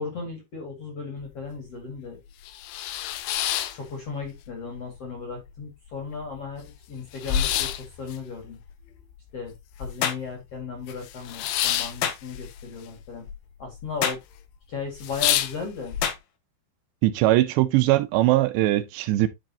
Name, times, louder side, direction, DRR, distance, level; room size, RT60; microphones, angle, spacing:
voice 1, 0.0-2.2 3.7-8.6 9.3-9.5 9.8-13.3 13.6-14.2 14.7-16.0, left 5 dB, 45° left, 2.2 m, -36 dB
sound 1, 1.2-1.3 1.7-1.8 2.3-4.5 4.8-5.5 5.9-6.0 6.1-10.3 10.6-13.4 13.6-14.2 14.5-14.6 14.9-16.0, left 11 dB, 90° left, 2.1 m, -29 dB
sound 2, 10.0-10.3 12.0-12.2 14.0-14.3 16.0-16.2, left 9 dB, 70° left, 2.4 m, -27 dB
voice 2, 17.0-19.3, right 16 dB, 80° right, 2.8 m, -21 dB
10.0 x 5.1 x 2.8 m
omnidirectional pair, 5.2 m